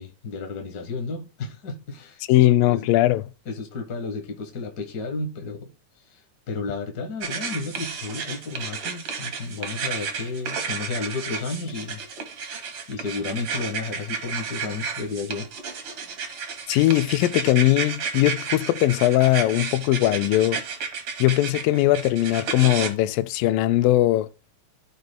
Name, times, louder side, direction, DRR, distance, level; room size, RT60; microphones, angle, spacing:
voice 1, 0.0-2.9 3.4-5.7 6.1-6.2 6.5-12.0 12.9-15.5, left 4 dB, 60° left, 1.0 m, -32 dB
voice 2, 2.3-3.2 16.7-20.6 21.2-24.3, left 15 dB, 90° left, 2.2 m, -20 dB
sound 1, 7.2-22.9, right 6 dB, 55° right, 1.6 m, -32 dB
14.0 x 5.1 x 2.2 m
omnidirectional pair, 3.9 m